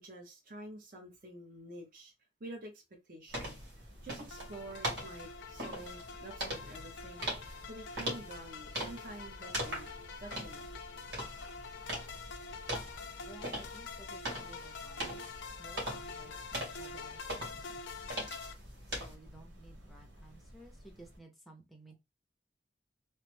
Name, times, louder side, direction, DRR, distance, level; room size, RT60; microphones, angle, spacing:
voice 1, 0.0-2.1 2.4-2.8 3.1-9.9 10.2-10.7, right 1 dB, 50° right, 0.8 m, -48 dB
sound 1, 3.3-19.1, right 1 dB, 70° right, 1.6 m, -42 dB
sound 2, 3.3-21.2, equal, 85° right, 1.3 m, -54 dB
sound 3, 4.3-18.5, left 5 dB, 80° left, 0.5 m, -46 dB
voice 2, 13.2-18.2 18.9-22.0, right 2 dB, ahead, 0.6 m, -56 dB
3.1 x 2.0 x 3.1 m
head